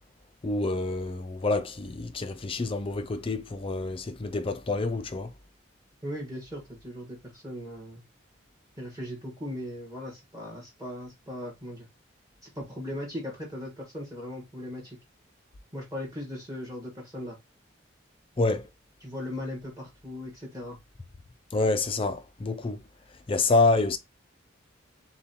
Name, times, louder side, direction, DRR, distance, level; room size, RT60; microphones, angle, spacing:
voice 1, 0.4-5.3 18.4-18.7 21.5-22.8 23.3-24.0, left 3 dB, 25° left, 0.4 m, -27 dB
voice 2, 6.0-8.0 8.8-11.9 12.4-15.0 15.7-17.4 19.0-20.8, left 1 dB, 15° right, 1.4 m, -38 dB
6.9 x 2.3 x 2.8 m
head